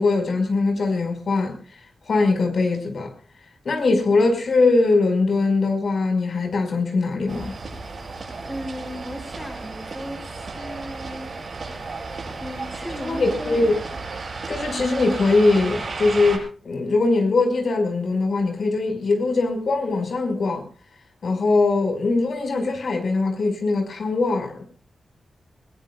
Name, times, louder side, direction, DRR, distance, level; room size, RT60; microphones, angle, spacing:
voice 1, 0.0-1.6 2.1-3.1 3.7-7.5 13.0-13.7 14.5-20.6 21.2-24.7, left 3 dB, 60° left, 5.3 m, -21 dB
sound 1, 7.3-16.4, right 3 dB, 45° right, 7.3 m, -34 dB
voice 2, 8.4-11.3 12.4-13.7, equal, 5° left, 5.6 m, -35 dB
21.5 x 21.5 x 2.4 m
wide cardioid pair, 130°, 0 cm